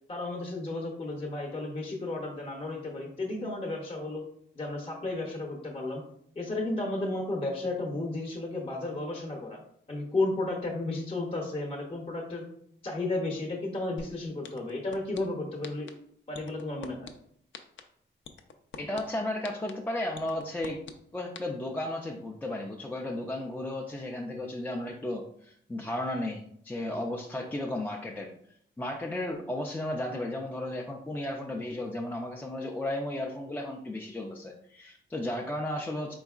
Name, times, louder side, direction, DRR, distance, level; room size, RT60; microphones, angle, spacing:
voice 1, 0.1-4.2 4.5-6.0 6.4-9.6 9.9-12.4 12.8-15.9 16.3-17.1, left 2 dB, 30° left, 0 dB, 0.7 m, -33 dB
sound 1, 14.0-14.1 14.4-15.2 15.6-15.9 16.3-17.1 17.5-17.8 18.2-19.0 19.4-19.7 20.1-20.9 21.3-21.4, left 6 dB, 70° left, 0.5 m, -42 dB
voice 2, 18.8-20.8 21.1-28.3 28.8-36.1, left 1 dB, 10° left, -1 dB, 0.3 m, -34 dB
4.3 x 3.8 x 2.4 m, 0.67 s
wide cardioid pair, 155°, 20 cm